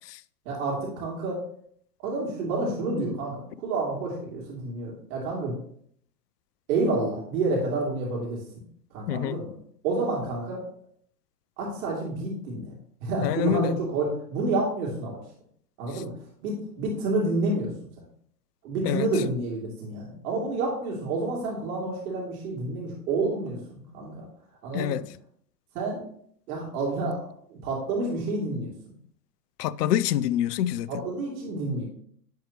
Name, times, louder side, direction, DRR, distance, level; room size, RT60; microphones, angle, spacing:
voice 1, 0.4-1.4 2.0-5.5 6.7-8.6 8.9-9.5 9.8-10.6 11.6-15.2 15.8-16.1 16.4-17.9 18.6-24.2 24.6-25.1 25.7-26.0 26.5-27.2 27.5-28.9 30.9-31.9, right 2 dB, 55° right, 3.0 m, -29 dB
voice 2, 9.1-9.4 13.2-13.8 15.9-16.0 18.8-19.2 24.7-25.0 29.6-31.0, left 12 dB, 70° left, 0.5 m, -27 dB
10.5 x 4.7 x 2.9 m
hypercardioid pair, 120°, 50 cm